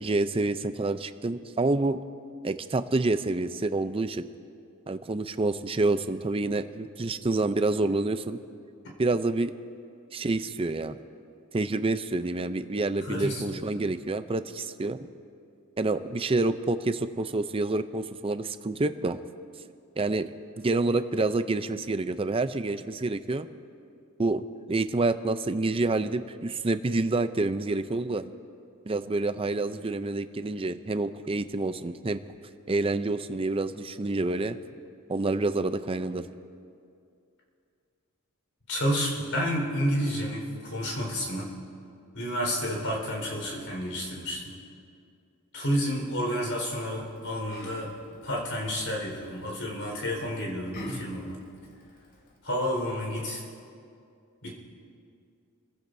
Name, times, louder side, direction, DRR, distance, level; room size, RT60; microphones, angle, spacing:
voice 1, 0.0-2.0 2.4-4.3 4.9-8.4 9.0-9.5 10.1-11.0 11.5-15.1 15.8-19.2 20.0-23.5 24.2-28.3 28.9-32.2 32.7-34.6 35.1-36.3, right 2 dB, 25° right, 11 dB, 0.5 m, -28 dB
voice 2, 13.0-13.6 38.7-41.5 42.1-44.6 45.5-47.9 48.2-51.4 52.4-53.4 54.4-54.5, equal, 70° left, -1 dB, 4.6 m, -30 dB
Yell, 46.9-52.4, left 1 dB, 50° left, 2.5 m, -46 dB
29.0 x 15.5 x 2.7 m, 2.4 s
head